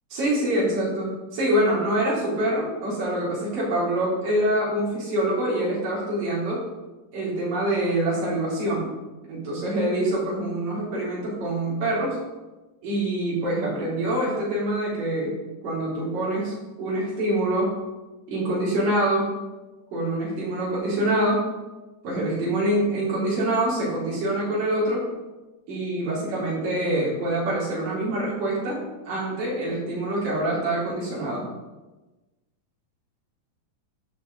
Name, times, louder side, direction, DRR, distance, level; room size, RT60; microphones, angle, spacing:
voice 1, 0.1-6.6 7.1-8.9 9.3-12.2 12.8-15.3 15.6-17.7 18.3-19.3 19.9-21.5 22.0-25.1 25.7-28.8 29.0-31.4, right 1 dB, 60° right, -7 dB, 5.1 m, -25 dB
12.5 x 6.4 x 4.0 m, 1.1 s
omnidirectional pair, 4.4 m